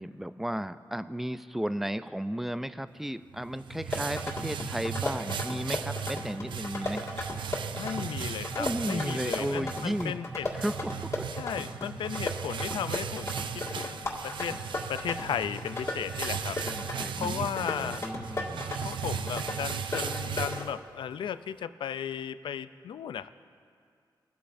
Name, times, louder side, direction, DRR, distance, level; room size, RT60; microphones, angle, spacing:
voice 1, 0.0-7.0 8.6-10.1 10.5-11.3 16.6-18.7, equal, 5° right, 13 dB, 0.4 m, -34 dB
sound 1, 3.3-21.1, right 7 dB, 80° right, 0.4 m, -37 dB
sound 2, 3.7-20.6, left 2 dB, 35° left, 1.9 m, -36 dB
voice 2, 7.8-10.5 11.4-14.6 14.9-16.6 17.2-18.0 18.8-23.3, left 8 dB, 90° left, 13 dB, 0.4 m, -35 dB
23.0 x 8.3 x 2.6 m, 2.2 s
cardioid pair, 70°, 8 cm